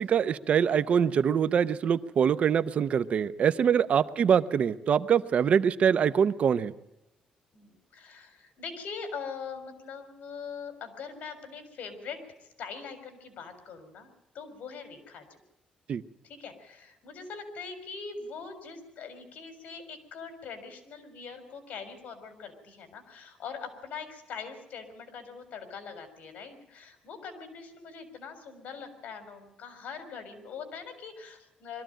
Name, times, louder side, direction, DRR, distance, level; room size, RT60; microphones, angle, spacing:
voice 1, 0.0-6.7 15.9-16.0, right 7 dB, 55° right, 15 dB, 0.7 m, -24 dB
voice 2, 7.5-15.4 16.2-31.8, left 5 dB, 70° left, 8 dB, 4.1 m, -42 dB
22.5 x 14.0 x 9.0 m, 0.89 s
cardioid pair, 125°, 3 cm